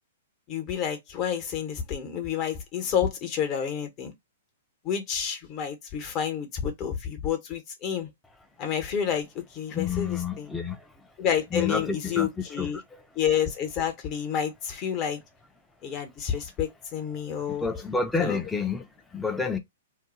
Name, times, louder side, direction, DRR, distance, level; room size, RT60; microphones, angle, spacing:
voice 1, 0.5-4.1 4.8-8.1 8.6-10.5 11.2-12.8 13.1-15.2 15.8-17.7 18.2-18.4, left 8 dB, 35° left, 1.1 m, -29 dB
voice 2, 9.7-10.8 11.5-12.3 12.6-12.7 17.6-18.8 19.1-19.6, left 5 dB, 5° left, 0.6 m, -28 dB
2.6 x 2.2 x 3.8 m
hypercardioid pair, 130°, 0 cm